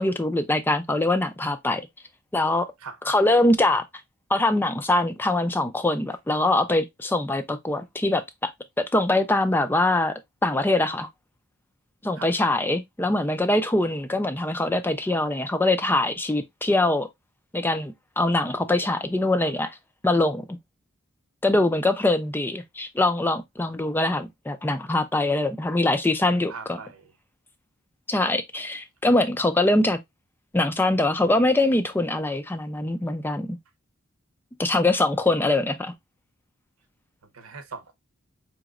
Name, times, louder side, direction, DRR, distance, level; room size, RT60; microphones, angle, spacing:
voice 1, 0.0-1.9 2.3-2.7 3.1-3.8 4.3-8.5 8.8-10.1 10.4-11.1 12.0-17.1 17.5-19.8 20.0-20.6 21.4-26.8 28.1-30.0 30.5-33.6 34.6-35.9, left 2 dB, 10° left, 0.3 m, -23 dB
voice 2, 18.2-18.7 26.5-27.1 37.2-37.9, right 5 dB, 80° right, 0.8 m, -41 dB
5.0 x 2.9 x 2.4 m
head